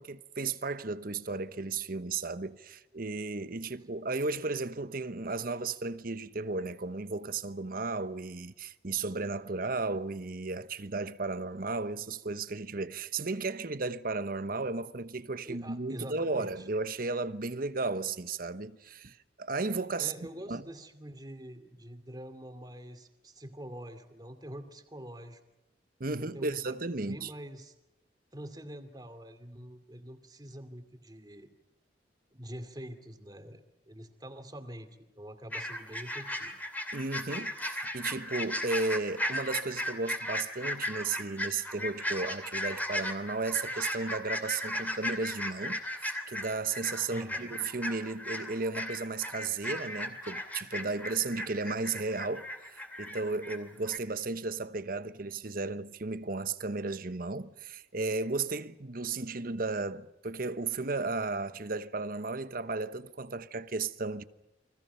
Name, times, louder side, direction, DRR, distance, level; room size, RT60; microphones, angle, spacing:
voice 1, 0.0-20.1 20.5-20.6 26.0-27.3 36.9-64.2, right 3 dB, 50° right, 1.0 m, -34 dB
voice 2, 15.5-16.7 20.0-25.4 26.1-26.8 27.1-27.7 28.3-31.5 32.3-36.5 47.1-47.6, equal, 20° right, 2.5 m, -45 dB
sound 1, 35.5-53.6 53.9-54.0, left 1 dB, 10° left, 2.8 m, -36 dB
30.0 x 24.0 x 5.7 m
head